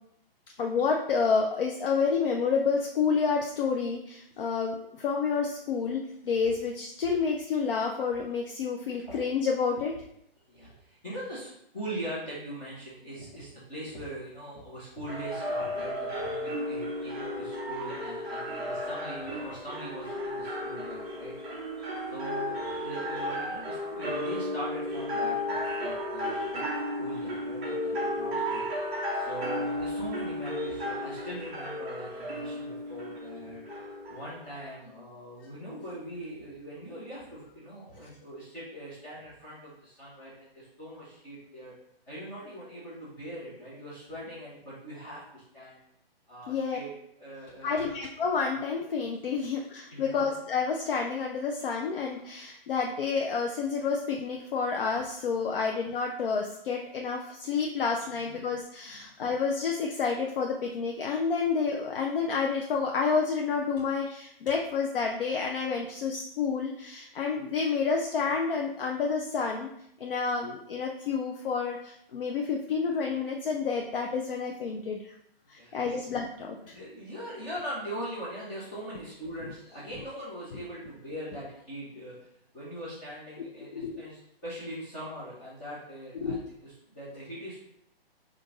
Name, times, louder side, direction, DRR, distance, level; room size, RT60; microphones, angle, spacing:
voice 1, 0.6-9.9 46.5-46.8 47.6-69.7 70.0-75.1 75.5-76.6 83.7-84.0 86.2-86.4, left 5 dB, 65° left, 1 dB, 0.6 m, -29 dB
voice 2, 10.5-21.3 22.1-26.6 27.0-28.7 29.1-33.8 34.1-41.7 42.1-45.8 46.3-46.9 47.2-47.9 49.3-49.4 49.9-50.3 55.5-55.6 58.1-58.4 58.9-59.1 75.5-76.0 76.6-82.2 82.5-87.6, right 1 dB, 20° left, -11 dB, 1.2 m, -41 dB
sound 1, 15.1-34.6, left 1 dB, 10° right, 0.5 m, -34 dB
5.3 x 2.5 x 3.8 m, 0.75 s
hypercardioid pair, 165°, 30 cm